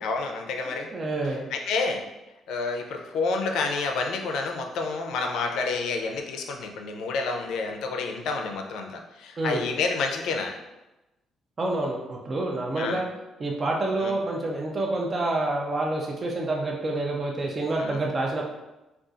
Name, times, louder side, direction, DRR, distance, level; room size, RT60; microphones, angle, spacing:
voice 1, 0.0-0.9 1.5-2.0 2.5-10.6 12.8-13.0 14.0-14.1 17.8-18.0, left 4 dB, 75° left, 3 dB, 0.4 m, -29 dB
voice 2, 0.6-1.4 9.4-9.7 11.6-13.0 13.4-18.4, right 2 dB, 25° right, -1 dB, 0.3 m, -28 dB
2.4 x 2.3 x 3.8 m, 1.0 s
cardioid pair, 180°, 0 cm